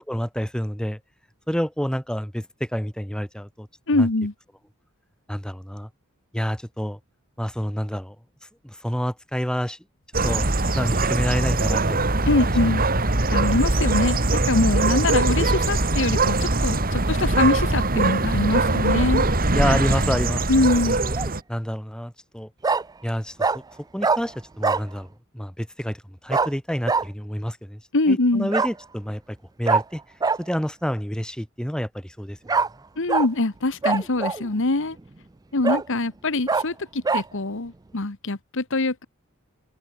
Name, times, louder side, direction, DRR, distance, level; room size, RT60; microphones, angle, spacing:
voice 1, 0.1-1.0 1.5-3.7 3.9-4.1 5.3-5.9 6.3-7.0 7.4-8.2 8.6-9.8 10.2-12.4 19.5-20.9 21.5-22.5 23.0-23.6 23.9-25.1 25.3-27.8 28.1-30.0 30.4-32.4, equal, 5° left, 3.1 m, -28 dB
voice 2, 3.9-4.3 12.3-12.8 13.3-19.2 20.5-21.0 27.9-28.5 33.0-35.0 35.5-39.0, left 2 dB, 65° left, 1.5 m, -23 dB
sound 1, 10.1-21.4, right 2 dB, 45° right, 3.2 m, -22 dB
Bark, 20.9-21.3 22.6-22.8 23.4-23.6 24.0-24.2 24.6-24.9 26.3-26.5 26.9-27.0 28.5-28.7 29.7-29.8 30.2-30.4 32.5-32.7 33.1-33.3 33.8-34.5 35.0-35.1 35.6-35.8 36.5-36.6 37.0-37.2, right 4 dB, 20° right, 0.4 m, -22 dB
head